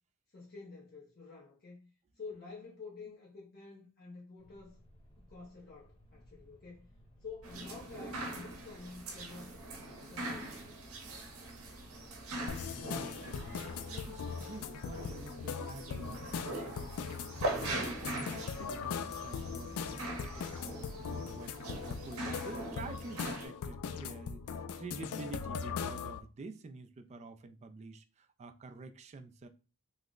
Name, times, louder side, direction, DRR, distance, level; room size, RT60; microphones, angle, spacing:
voice 1, 0.3-4.8 5.2-6.9 7.2-9.6 10.0-10.6, left 4 dB, 45° left, 0.7 m, -49 dB
sound 1, 4.4-18.1, equal, 30° left, 1.1 m, -60 dB
sound 2, 7.4-23.5, right 1 dB, 70° right, 0.8 m, -42 dB
sound 3, 12.5-26.2, left 6 dB, 80° left, 0.4 m, -40 dB
voice 2, 12.5-29.5, right 3 dB, 30° right, 0.3 m, -49 dB
3.2 x 2.0 x 3.7 m
head